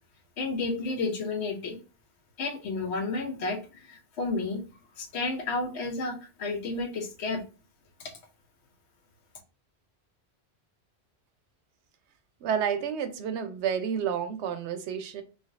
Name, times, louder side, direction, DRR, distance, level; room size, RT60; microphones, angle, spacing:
voice 1, 0.4-1.8 2.4-4.6 5.0-7.4 8.0-8.1, left 3 dB, 80° left, 0.9 m, -31 dB
voice 2, 12.4-15.2, right 8 dB, 90° right, 0.9 m, -30 dB
3.2 x 2.3 x 2.5 m
omnidirectional pair, 1.1 m